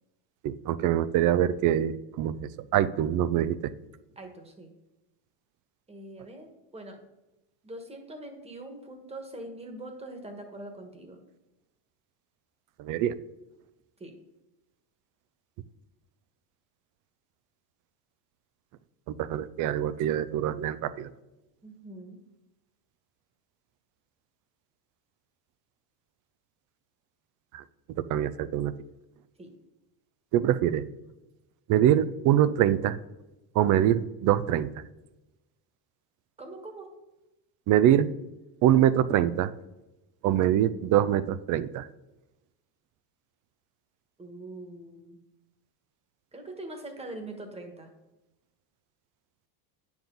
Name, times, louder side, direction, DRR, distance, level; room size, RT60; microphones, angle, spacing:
voice 1, 0.4-3.6 12.8-13.1 19.1-21.1 27.5-27.6 28.0-28.7 30.3-30.8 31.7-33.0 33.5-34.7 37.7-38.1 38.6-39.5 40.2-41.9, right 11 dB, 40° right, 16 dB, 0.5 m, -24 dB
voice 2, 4.1-4.7 5.9-7.0 7.6-11.2 14.0-14.1 21.6-22.2 29.4-29.5 36.4-36.9 44.2-45.2 46.3-47.9, right 1 dB, 10° right, 5 dB, 1.5 m, -43 dB
9.5 x 7.1 x 3.9 m, 0.98 s
cardioid pair, 140°, 50 cm